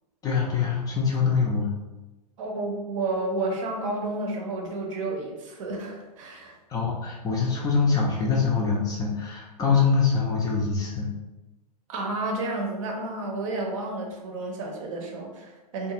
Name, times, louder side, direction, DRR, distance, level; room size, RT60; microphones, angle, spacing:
voice 1, 0.2-1.7 6.3-6.4 6.7-11.1, left 5 dB, 15° left, -2 dB, 0.4 m, -24 dB
voice 2, 2.4-6.6 11.9-15.9, right 2 dB, 50° right, 1 dB, 0.7 m, -31 dB
2.5 x 2.3 x 2.9 m, 1.1 s
figure-of-eight pair, 100°, 21 cm